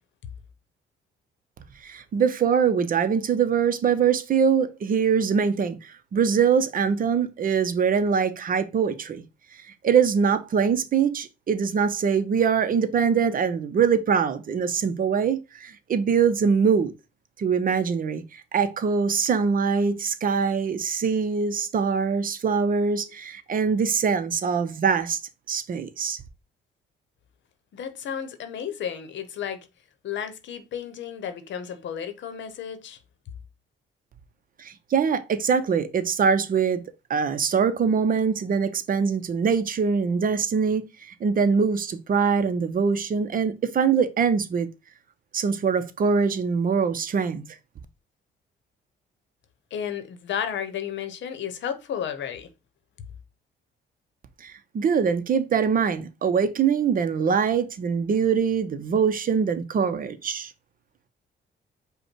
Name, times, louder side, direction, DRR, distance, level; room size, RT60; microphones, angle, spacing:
voice 1, 1.8-9.2 9.8-16.9 17.4-25.2 25.5-26.2 34.6-36.8 37.1-44.7 45.3-47.4 54.4-60.5, right 6 dB, 45° right, 0.6 m, -23 dB
voice 2, 27.7-29.7 30.0-33.0 49.7-52.5, left 8 dB, 65° left, 0.8 m, -33 dB
5.2 x 2.2 x 4.5 m
cardioid pair, 90°, 20 cm